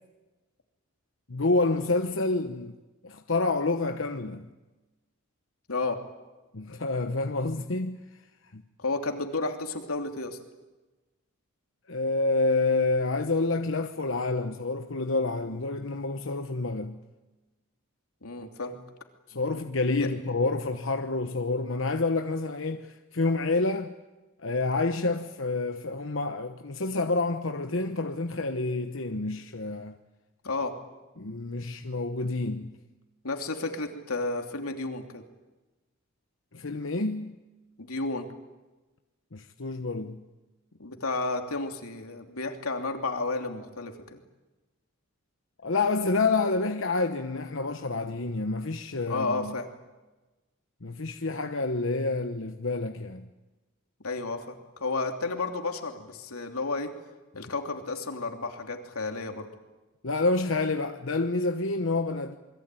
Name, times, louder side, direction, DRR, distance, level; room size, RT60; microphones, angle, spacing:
voice 1, 1.3-2.8 3.0-4.5 6.5-8.0 8.5-8.6 11.9-17.0 19.3-23.9 24.4-30.0 31.2-32.8 36.5-37.4 39.3-40.2 45.6-49.6 50.8-53.3 60.0-62.4, left 3 dB, 60° left, 1.0 m, -28 dB
voice 2, 5.7-6.0 8.8-10.4 18.2-18.8 20.0-20.1 30.4-30.8 33.2-35.2 37.8-38.3 40.8-44.2 49.1-49.7 54.0-56.9 57.3-59.5, left 3 dB, 90° left, 2.9 m, -32 dB
28.0 x 22.0 x 9.1 m
head